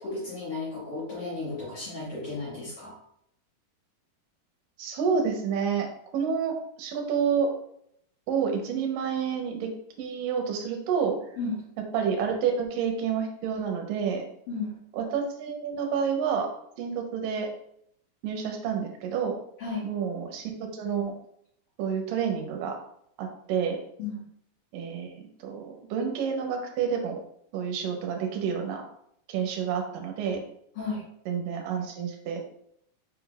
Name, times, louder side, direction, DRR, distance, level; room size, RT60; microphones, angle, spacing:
voice 1, 0.0-3.0 11.4-11.6 14.5-14.8 19.6-19.9 24.0-24.2 30.7-31.0, left 3 dB, 75° left, -7 dB, 1.3 m, -34 dB
voice 2, 4.8-5.9 6.1-7.5 8.3-11.2 11.9-14.2 14.9-16.5 16.8-17.5 18.2-19.4 19.8-21.1 21.8-22.8 23.2-23.8 24.7-25.1 25.4-27.2 27.5-28.8 29.3-30.4 31.3-32.4, right 6 dB, 75° right, 3 dB, 2.3 m, -29 dB
5.5 x 3.8 x 2.3 m, 0.69 s
omnidirectional pair, 4.3 m